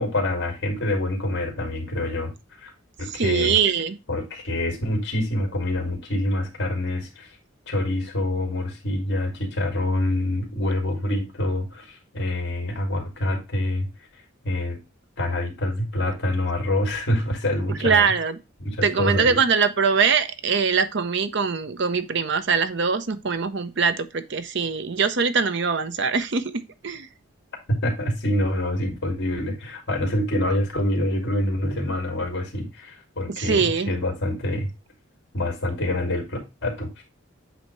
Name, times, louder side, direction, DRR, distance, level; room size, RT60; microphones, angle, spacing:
voice 1, 0.0-2.3 2.6-2.7 3.0-3.6 4.1-7.4 7.7-13.9 14.4-14.8 15.2-18.1 18.6-19.4 27.8-34.7 35.3-37.0, left 1 dB, 55° left, 2.4 m, -26 dB
voice 2, 3.1-4.0 17.8-18.3 18.8-27.1 33.3-33.9, right 5 dB, 55° right, 0.7 m, -22 dB
8.1 x 2.9 x 4.4 m
head